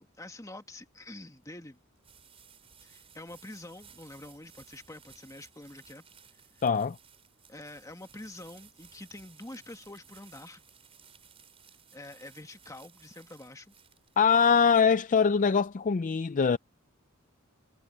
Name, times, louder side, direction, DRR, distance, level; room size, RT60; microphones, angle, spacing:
voice 1, 0.0-1.8 2.8-6.0 7.5-10.6 11.9-13.7, left 1 dB, 15° left, 1.7 m, -46 dB
sound 1, 1.0-15.7, right 7 dB, 30° right, 5.1 m, -58 dB
voice 2, 6.6-7.0 14.2-16.6, left 6 dB, 35° left, 0.4 m, -23 dB
head